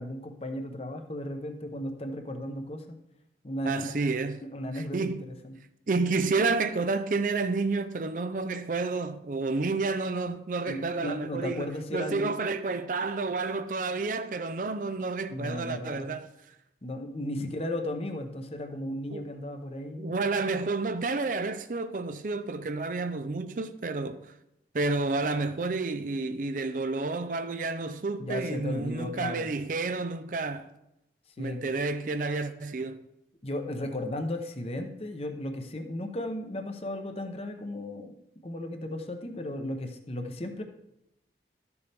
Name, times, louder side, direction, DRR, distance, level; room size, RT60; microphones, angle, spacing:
voice 1, 0.0-3.0 3.4-3.8 4.4-5.6 10.6-12.3 15.3-16.2 16.8-20.2 28.2-29.5 31.4-31.6 33.4-38.1 38.4-40.6, left 1 dB, 35° left, 0.8 m, -35 dB
voice 2, 3.6-4.4 4.7-5.2 5.9-16.3 19.1-19.2 19.9-24.2 24.7-30.7 31.4-33.0, right 3 dB, 50° right, 0.4 m, -30 dB
12.5 x 7.0 x 3.4 m
head